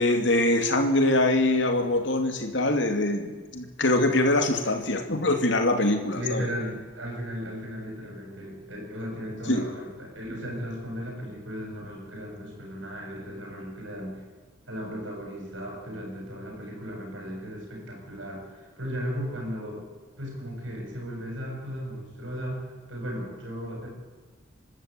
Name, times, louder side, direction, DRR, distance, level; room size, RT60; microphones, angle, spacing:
voice 1, 0.0-6.5 9.5-9.6, left 2 dB, 65° left, 5 dB, 2.6 m, -23 dB
voice 2, 6.1-14.2 14.7-18.5 18.8-19.8 20.2-23.9, equal, 70° right, 0 dB, 7.2 m, -36 dB
25.0 x 12.5 x 9.1 m, 1.4 s
head